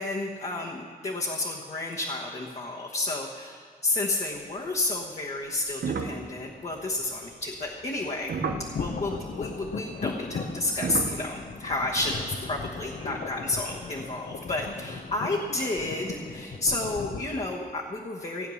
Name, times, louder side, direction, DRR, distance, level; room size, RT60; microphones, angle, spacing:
voice 1, 0.0-8.3 8.8-18.5, left 2 dB, 45° left, -2 dB, 1.2 m, -31 dB
sound 1, 5.7-9.0 10.0-11.1, right 5 dB, 85° right, 0.8 m, -33 dB
sound 2, 8.4-17.3, left 4 dB, 80° left, 0.9 m, -37 dB
16.5 x 9.2 x 6.4 m, 2.3 s
wide cardioid pair, 140°, 15 cm